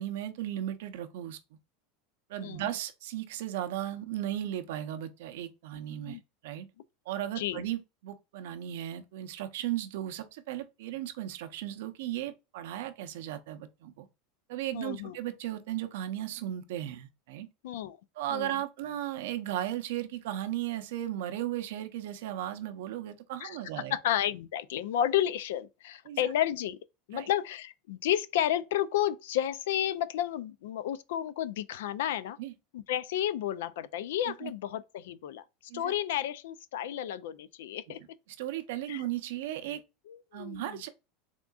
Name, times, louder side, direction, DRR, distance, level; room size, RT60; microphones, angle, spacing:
voice 1, 0.0-1.4 2.3-6.7 7.1-14.1 14.5-17.5 18.2-24.0 26.0-26.3 27.1-27.3 32.4-32.5 34.2-34.5 35.7-35.9 37.9-38.0 38.4-39.8 40.3-40.9, right 12 dB, 65° right, 0.6 m, -36 dB
voice 2, 14.7-15.2 17.6-18.0 18.3-18.5 23.4-23.6 23.9-26.8 27.1-32.4 32.7-35.4 35.7-38.0 38.9-39.0 40.1-40.8, left 11 dB, 80° left, 0.3 m, -31 dB
3.6 x 3.6 x 2.3 m
supercardioid pair, 180°, 0 cm